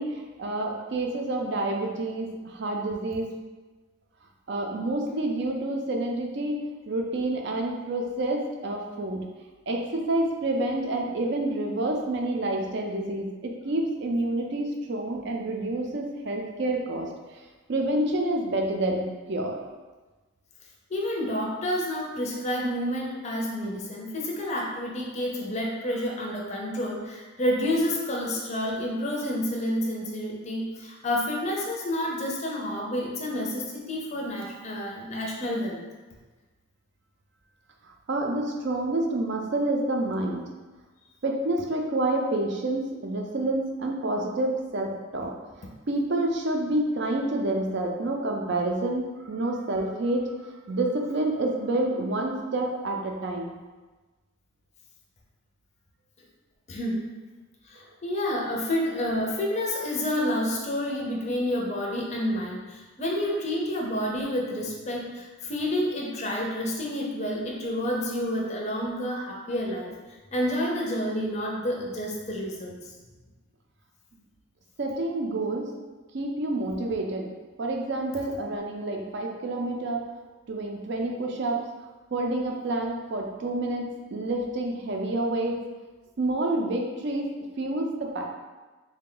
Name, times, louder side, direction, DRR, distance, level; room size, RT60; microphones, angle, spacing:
voice 1, 0.0-3.3 4.5-6.6 6.9-9.2 9.7-17.4 17.7-19.6 38.1-40.4 41.2-53.5 57.8-57.9 74.8-75.7 76.1-77.3 77.6-80.0 80.5-81.6 82.1-83.8 84.1-85.6 86.2-87.2 87.6-88.2, right 2 dB, 55° right, 1 dB, 0.4 m, -28 dB
voice 2, 20.9-35.8 56.7-57.0 57.7-70.0 70.3-72.8, left 1 dB, 30° left, -2 dB, 0.5 m, -29 dB
3.7 x 2.2 x 3.7 m, 1.3 s
head